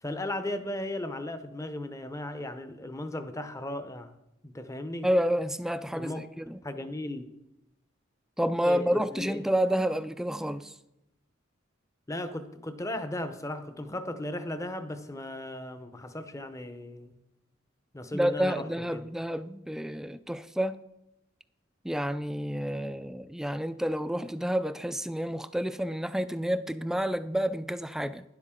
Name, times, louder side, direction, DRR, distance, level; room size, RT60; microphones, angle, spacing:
voice 1, 0.0-4.1 4.4-5.1 5.9-6.2 6.6-7.3 8.6-9.6 12.1-17.2 17.9-19.1, left 1 dB, 15° left, 0.7 m, -36 dB
voice 2, 5.0-6.6 8.4-10.7 18.1-20.8 21.8-28.2, equal, 5° right, 0.3 m, -29 dB
11.5 x 10.5 x 3.7 m
head